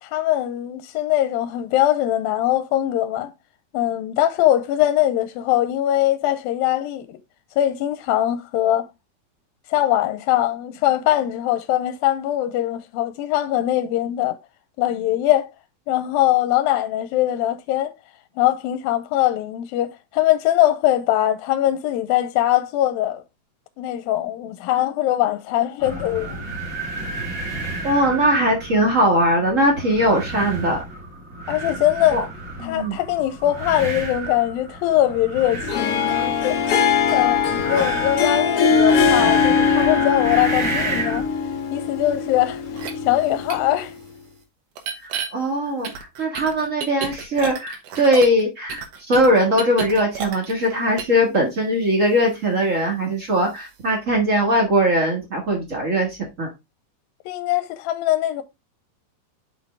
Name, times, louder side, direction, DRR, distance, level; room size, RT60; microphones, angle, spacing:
voice 1, 0.0-3.3 3.7-7.2 7.6-8.9 9.7-14.4 14.8-15.5 15.9-17.9 18.4-23.2 23.8-26.5 31.5-32.2 32.6-36.6 37.1-41.3 41.7-43.9 51.4-51.5 57.3-58.4, left 13 dB, 85° left, 2.4 m, -21 dB
sound 1, 25.8-41.3, right 3 dB, 25° right, 2.3 m, -32 dB
voice 2, 27.8-30.8 32.1-32.2 32.6-33.0 45.0-56.5, equal, 50° right, 0.9 m, -20 dB
Harp, 35.6-43.9, left 6 dB, 65° left, 1.4 m, -21 dB
sound 2, 42.8-42.9 43.5-43.6 44.8-45.3 45.8-48.4 48.7-50.7 51.0-51.2, right 7 dB, 80° right, 3.3 m, -30 dB
6.8 x 5.7 x 3.4 m
omnidirectional pair, 4.3 m